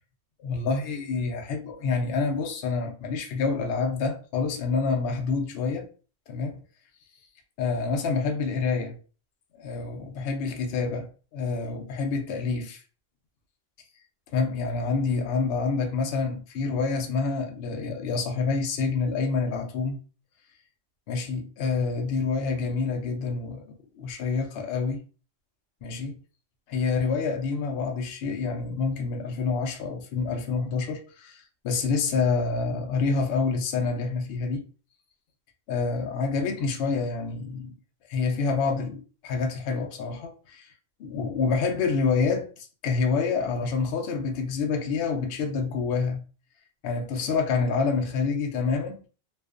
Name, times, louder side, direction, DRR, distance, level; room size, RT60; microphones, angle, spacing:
voice 1, 0.4-5.9 6.3-6.6 7.6-9.0 9.6-12.8 14.3-20.0 21.1-23.6 24.0-25.0 25.8-26.2 26.7-34.6 35.7-37.7 38.1-40.7 41.0-46.2 46.8-49.0, left 4 dB, 65° left, 0.7 m, -27 dB
2.4 x 2.3 x 2.3 m
omnidirectional pair, 1.3 m